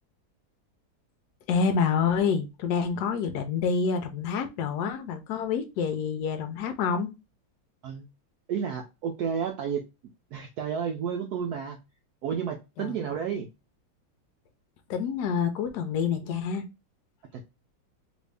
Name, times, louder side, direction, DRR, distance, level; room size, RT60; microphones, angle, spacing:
voice 1, 1.5-7.1 12.8-13.0 14.9-16.7, left 6 dB, 70° left, 1.0 m, -27 dB
voice 2, 8.5-9.8 10.3-11.8 12.2-13.5 17.3-17.4, right 7 dB, 85° right, 0.8 m, -31 dB
3.1 x 2.6 x 3.2 m
omnidirectional pair, 2.2 m